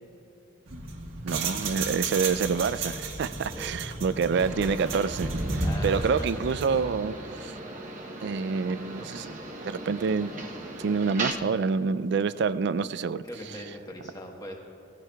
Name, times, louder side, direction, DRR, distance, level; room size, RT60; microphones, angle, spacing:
sound 1, 0.7-6.8, right 3 dB, 85° right, 1.4 m, -33 dB
voice 1, 1.2-7.6 8.2-10.3 10.8-13.6, right 5 dB, 60° right, 15 dB, 0.3 m, -28 dB
voice 2, 3.5-4.0 5.6-6.4 13.3-14.6, left 1 dB, 20° left, 0 dB, 1.3 m, -41 dB
sound 2, 4.3-11.3, right 2 dB, 40° right, 0.9 m, -38 dB
18.0 x 14.5 x 2.3 m, 2.6 s
head